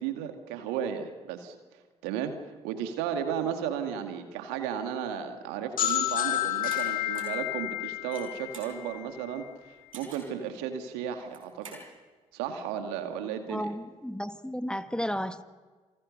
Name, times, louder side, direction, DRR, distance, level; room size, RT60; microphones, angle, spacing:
voice 1, 0.0-1.6 2.0-2.4 2.6-9.4 9.9-11.8 12.3-13.7, right 8 dB, 70° right, 2.3 m, -34 dB
sound 1, 5.8-9.4, left 13 dB, 55° left, 2.3 m, -30 dB
sound 2, 6.7-6.8 7.1-7.4 8.0-8.7 9.9-10.4 11.2-11.8, right 4 dB, 90° right, 5.0 m, -46 dB
voice 2, 13.5-15.4, equal, 5° left, 1.6 m, -33 dB
28.5 x 26.0 x 6.7 m
figure-of-eight pair, 40°, 17 cm